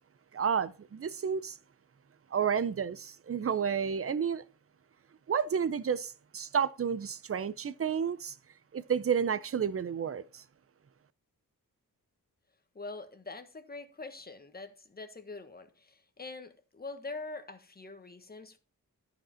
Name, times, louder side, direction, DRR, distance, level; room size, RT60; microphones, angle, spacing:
voice 1, 0.3-1.6 2.3-4.4 5.3-8.4 8.7-10.4, right 7 dB, 40° right, 0.6 m, -31 dB
voice 2, 12.7-18.6, left 3 dB, 25° left, 1.3 m, -44 dB
13.0 x 5.2 x 5.7 m
wide cardioid pair, 135°, 36 cm